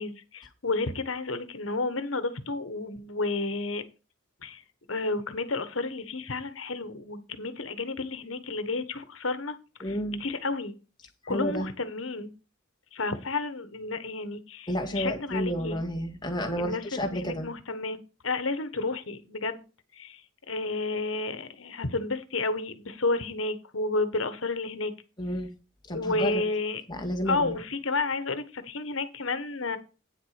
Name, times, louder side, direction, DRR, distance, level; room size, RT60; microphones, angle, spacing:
voice 1, 0.0-3.9 4.4-4.6 4.9-10.7 11.3-12.3 12.9-15.8 16.6-18.0 18.2-19.6 20.0-20.2 20.5-24.9 25.9-26.8 27.3-29.8, left 3 dB, 80° left, 11 dB, 1.4 m, -31 dB
voice 2, 9.8-10.2 11.2-11.7 14.7-17.5 25.2-25.5 25.9-26.4 26.9-27.5, equal, 20° left, 3 dB, 2.0 m, -30 dB
9.4 x 7.3 x 5.1 m, 0.32 s
head